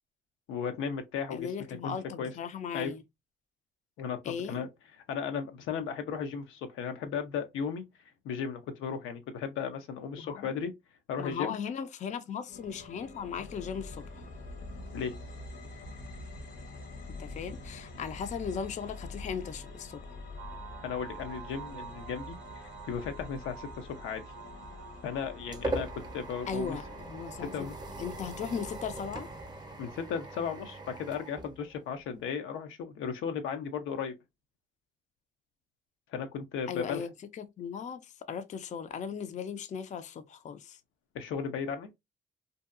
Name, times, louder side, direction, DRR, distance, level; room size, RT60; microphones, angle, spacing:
voice 1, 0.5-1.5 1.8-2.3 2.7-2.9 4.0-4.7 5.1-7.9 8.2-10.7 11.1-11.6 14.9-15.1 20.8-24.2 25.0-26.8 27.4-27.8 29.8-34.2 36.1-37.0 41.1-41.9, left 6 dB, 85° left, 0.6 m, -35 dB
voice 2, 1.3-3.0 4.2-4.6 10.2-10.5 11.2-14.2 17.2-20.1 26.5-27.5 28.0-29.3 36.7-40.8, left 7 dB, 35° left, 0.4 m, -37 dB
sound 1, 12.5-29.9, left 2 dB, 65° left, 1.0 m, -46 dB
sound 2, 20.4-27.0, right 8 dB, 80° right, 0.5 m, -48 dB
sound 3, 24.8-32.2, right 2 dB, 20° right, 0.6 m, -41 dB
2.7 x 2.2 x 2.3 m
cardioid pair, 90°, 20 cm